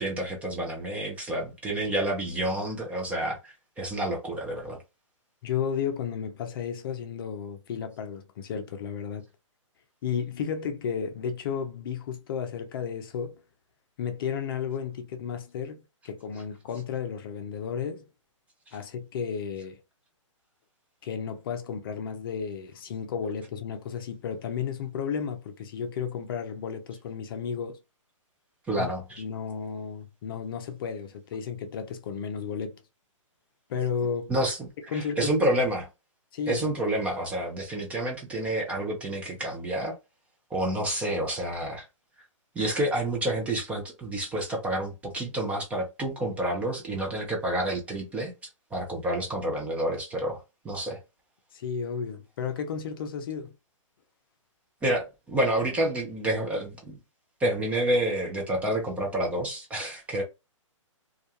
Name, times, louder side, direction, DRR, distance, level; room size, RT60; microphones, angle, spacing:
voice 1, 0.0-4.8 18.7-18.8 28.7-29.2 34.3-35.9 36.5-40.0 40.5-41.9 42.6-48.3 48.7-51.0 54.8-57.0 57.4-60.2, right 1 dB, 10° right, 0.4 m, -29 dB
voice 2, 5.4-9.2 10.0-13.4 14.0-18.1 18.7-19.8 21.0-27.8 28.8-28.9 29.2-32.8 33.7-34.3 34.9-35.4 36.3-36.7 51.5-53.5, left 7 dB, 45° left, 0.5 m, -33 dB
2.3 x 2.2 x 2.8 m
hypercardioid pair, 145°, 17 cm